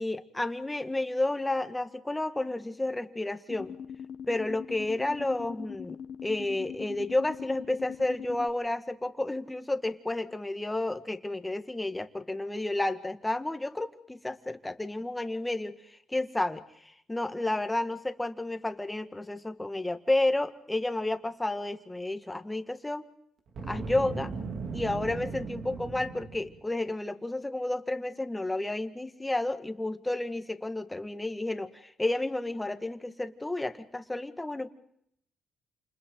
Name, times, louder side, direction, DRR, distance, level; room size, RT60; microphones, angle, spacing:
voice 1, 0.0-3.7 4.3-15.7 16.1-23.1 23.7-24.3 24.7-34.7, left 2 dB, 10° left, 8 dB, 1.7 m, -31 dB
sound 1, 3.5-8.5, left 7 dB, 55° left, 1.1 m, -42 dB
Boom, 23.5-26.6, right 4 dB, 65° right, 2.8 m, -37 dB
29.0 x 28.0 x 3.9 m, 0.71 s
cardioid pair, 90°, 0 cm